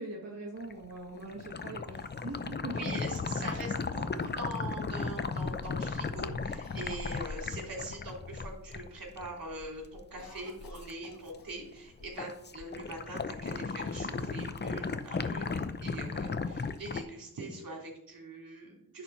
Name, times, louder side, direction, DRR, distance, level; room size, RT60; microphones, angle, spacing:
voice 1, 0.0-2.9, right 2 dB, 40° right, -3 dB, 1.5 m, -42 dB
sound 1, 0.6-10.9 11.3-11.7 12.0-17.0, left 4 dB, 30° left, 0.6 m, -36 dB
voice 2, 2.6-19.0, right 2 dB, 60° right, -1 dB, 3.1 m, -43 dB
Cough, 6.6-8.1 8.5-8.6 8.9-9.3 9.6-11.9 12.1-12.2 13.0-13.8, left 5 dB, 65° left, 1.3 m, -55 dB
10.5 x 4.3 x 5.6 m, 0.77 s
wide cardioid pair, 80°, 37 cm